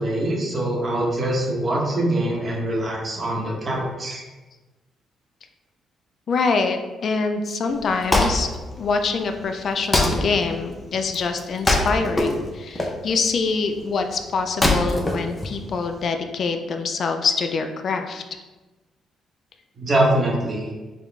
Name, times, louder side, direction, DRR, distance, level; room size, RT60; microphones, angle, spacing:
voice 1, 0.0-4.2 19.8-20.7, right 1 dB, 35° right, -2 dB, 1.1 m, -23 dB
voice 2, 6.3-8.5 8.8-18.2, left 4 dB, 55° left, 6 dB, 0.4 m, -25 dB
Wood, 7.7-16.0, left 1 dB, 20° left, 0.7 m, -25 dB
4.9 x 2.3 x 3.3 m, 1.2 s
cardioid pair, 90°, 0 cm